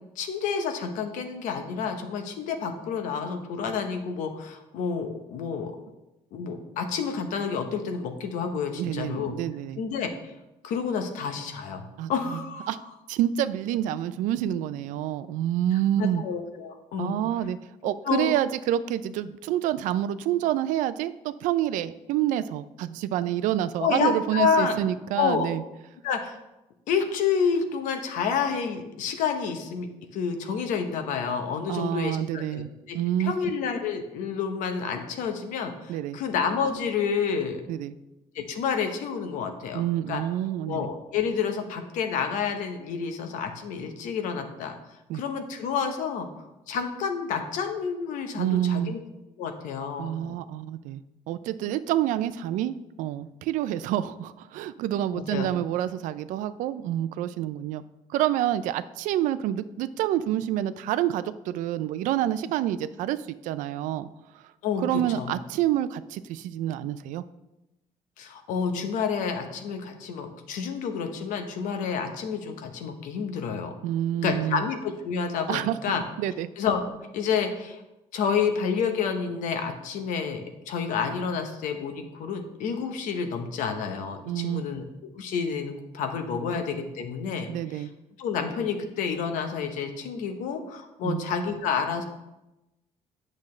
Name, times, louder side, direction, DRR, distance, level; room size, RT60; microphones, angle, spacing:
voice 1, 0.2-5.7 6.3-9.3 9.8-10.1 10.6-12.7 16.0-17.2 18.1-18.3 23.8-24.8 25.2-25.5 26.0-26.4 26.9-29.9 30.1-37.6 38.3-40.2 40.7-44.8 45.1-46.3 46.7-49.0 49.4-50.4 55.1-55.5 64.6-64.8 65.2-65.3 68.2-73.7 74.2-76.0 76.6-76.8 77.1-77.8 78.1-84.8 85.1-87.8 88.2-92.1, left 6 dB, 85° left, 6 dB, 0.9 m, -29 dB
voice 2, 8.7-9.8 12.0-12.4 12.7-12.8 13.1-16.2 17.0-17.6 17.8-25.6 31.7-32.7 32.9-33.3 35.9-36.2 37.7-37.9 39.7-40.9 45.1-45.2 48.4-48.9 50.0-57.8 58.1-64.1 64.8-67.2 73.8-74.7 75.5-76.5 84.3-84.7 87.5-87.9 91.0-91.3, right 12 dB, 85° right, 14 dB, 0.4 m, -28 dB
8.4 x 6.3 x 3.2 m, 0.97 s
cardioid pair, 100°, 13 cm